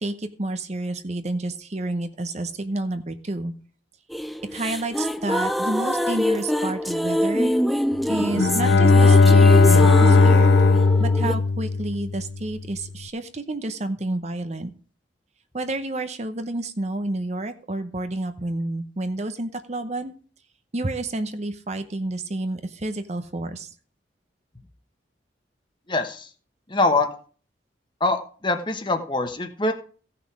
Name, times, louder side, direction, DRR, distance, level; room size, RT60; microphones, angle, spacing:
voice 1, 0.0-3.5 4.5-7.8 8.1-10.5 11.0-14.7 15.5-20.1 20.7-23.7, right 2 dB, 40° right, 9 dB, 0.8 m, -30 dB
sound 1, 4.1-11.3, equal, ahead, 0.5 m, -25 dB
Bowed string instrument, 8.2-12.3, left 3 dB, 80° left, 0.6 m, -16 dB
voice 2, 25.9-26.3 26.7-27.1 28.0-29.7, left 2 dB, 25° left, 6 dB, 1.2 m, -23 dB
15.5 x 5.9 x 4.8 m, 0.41 s
head